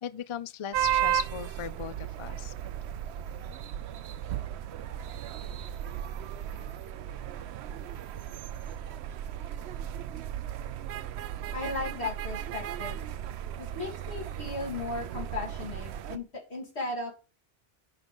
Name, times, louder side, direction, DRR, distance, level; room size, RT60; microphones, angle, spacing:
voice 1, 0.0-2.5, left 10 dB, 55° left, 0.3 m, -38 dB
sound 1, 0.7-16.2, right 11 dB, 90° right, 0.9 m, -35 dB
voice 2, 11.5-13.0 13.6-17.1, left 3 dB, 80° left, 3.4 m, -36 dB
10.0 x 3.8 x 5.3 m
omnidirectional pair, 1.1 m